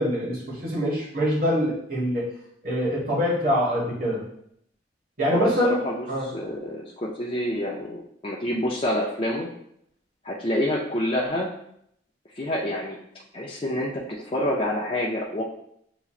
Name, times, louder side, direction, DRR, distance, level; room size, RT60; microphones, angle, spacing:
voice 1, 0.0-2.3 2.6-4.2 5.2-5.8 6.1-6.3, equal, 50° right, -5 dB, 1.6 m, -24 dB
voice 2, 5.3-9.5 10.2-11.5 12.4-13.0 13.3-15.4, left 1 dB, 30° left, -4 dB, 0.5 m, -27 dB
6.8 x 2.9 x 2.4 m, 0.72 s
head